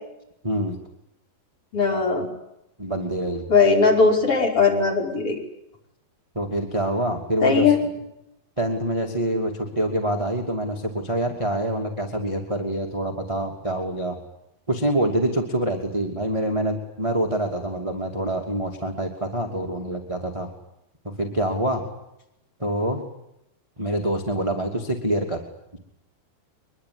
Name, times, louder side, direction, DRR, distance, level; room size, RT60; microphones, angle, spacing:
voice 1, 0.4-0.8 2.8-3.4 6.3-7.6 8.6-14.2 14.7-20.5 21.2-21.8 22.6-23.1 23.8-25.4 25.7-25.8, right 1 dB, 10° right, 2 dB, 2.2 m, -26 dB
voice 2, 1.7-2.3 3.5-5.4 7.4-7.8, left 4 dB, 35° left, 1 dB, 6.1 m, -19 dB
24.0 x 22.5 x 9.8 m, 0.83 s
omnidirectional pair, 4.4 m